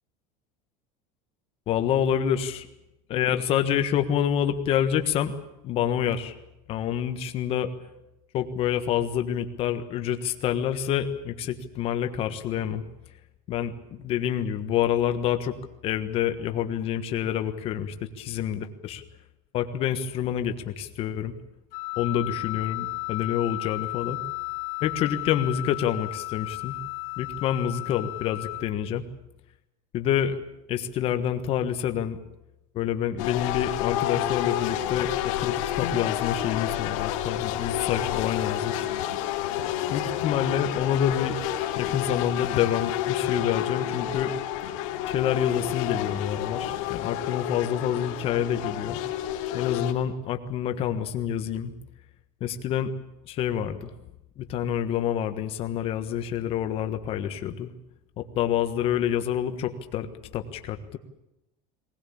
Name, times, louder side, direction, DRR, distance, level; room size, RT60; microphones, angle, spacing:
voice 1, 1.7-2.7 3.1-5.3 5.6-6.3 6.7-7.7 8.3-12.8 13.5-15.5 15.8-19.0 19.5-21.3 22.0-24.2 24.8-26.8 27.2-29.0 29.9-30.4 30.7-32.2 32.7-38.9 39.9-41.4 41.7-44.3 45.1-49.0 49.5-51.7 52.4-52.9 53.3-53.9 54.4-57.7 58.2-61.0, left 9 dB, 35° left, 8 dB, 1.4 m, -27 dB
Wind instrument woodwind instrument, 21.7-28.6, left 34 dB, 90° left, 2.8 m, -34 dB
sound 1, 33.2-49.9, left 12 dB, 65° left, 2.6 m, -29 dB
20.0 x 19.5 x 8.6 m, 0.90 s
cardioid pair, 175°, 18 cm